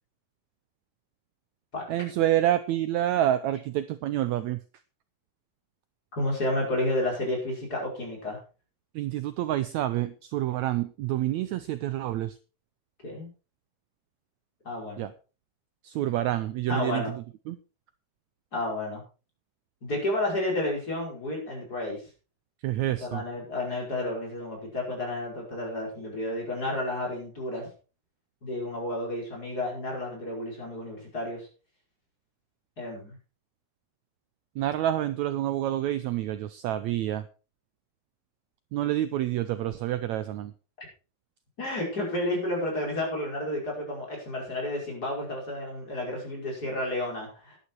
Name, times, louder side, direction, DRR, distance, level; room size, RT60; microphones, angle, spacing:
voice 1, 1.9-4.6 8.9-12.4 15.0-15.1 15.8-17.2 17.5-17.6 22.6-23.2 34.5-37.3 38.7-40.5, right 13 dB, 85° right, 13 dB, 1.6 m, -28 dB
voice 2, 6.2-8.4 13.0-13.3 14.6-15.1 16.0-16.1 16.7-17.1 18.5-19.0 19.8-22.0 22.9-27.7 28.4-31.5 32.8-33.2 41.6-47.6, left 1 dB, 25° left, -1 dB, 5.7 m, -31 dB
11.5 x 11.5 x 4.5 m, 0.34 s
omnidirectional pair, 4.0 m